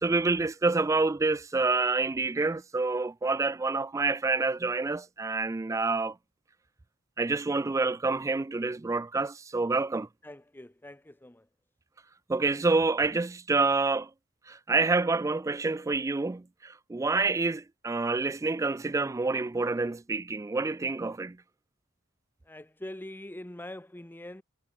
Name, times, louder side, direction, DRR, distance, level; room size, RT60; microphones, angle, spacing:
voice 1, 0.0-6.2 7.2-10.1 12.3-14.1 14.5-21.4, right 3 dB, 15° right, 0.3 m, -27 dB
voice 2, 10.2-11.5 22.5-24.4, left 1 dB, 10° left, 0.8 m, -43 dB
head